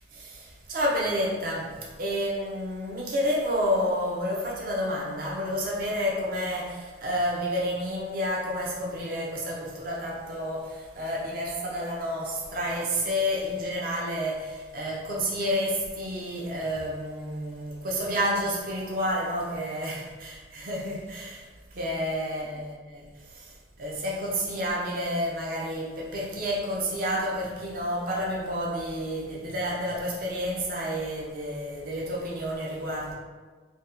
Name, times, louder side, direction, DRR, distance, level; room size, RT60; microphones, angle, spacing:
voice 1, 0.1-21.3 21.8-33.1, equal, 50° right, -3 dB, 0.6 m, -30 dB
2.6 x 2.3 x 3.8 m, 1.4 s
head